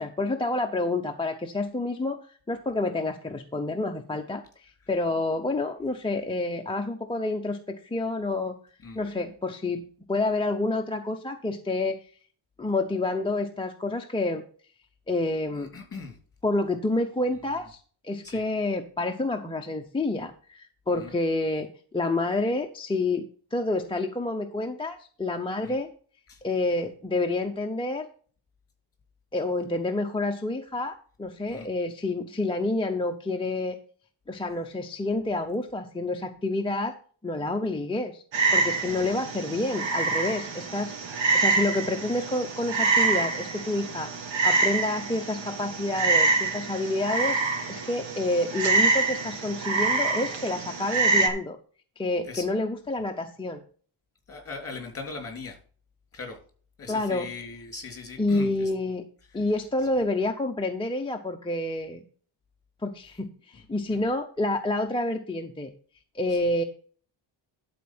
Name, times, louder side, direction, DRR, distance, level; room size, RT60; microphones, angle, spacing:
voice 1, 0.0-8.6 9.0-9.8 10.1-12.0 12.6-14.4 15.1-15.7 16.4-21.7 21.9-23.2 23.5-25.9 26.4-28.1 29.3-33.8 34.3-37.0 37.2-38.2 38.5-44.1 44.4-47.4 47.7-51.6 52.0-53.6 56.9-57.3 58.2-59.0 59.3-62.0 62.8-65.7 66.1-66.6, left 2 dB, 10° left, 2 dB, 0.5 m, -28 dB
voice 2, 15.6-16.2 18.2-18.4 20.9-21.1 25.6-25.8 26.3-26.4 31.5-31.7 38.9-39.1 52.2-52.4 54.3-55.6 56.1-56.4 56.8-58.7 59.3-59.4 63.9-64.0 66.3-66.4, left 4 dB, 30° left, 4 dB, 2.9 m, -40 dB
Frog, 38.3-51.3, right 3 dB, 75° right, 2.1 m, -26 dB
12.0 x 4.3 x 5.9 m, 0.43 s
wide cardioid pair, 155°, 47 cm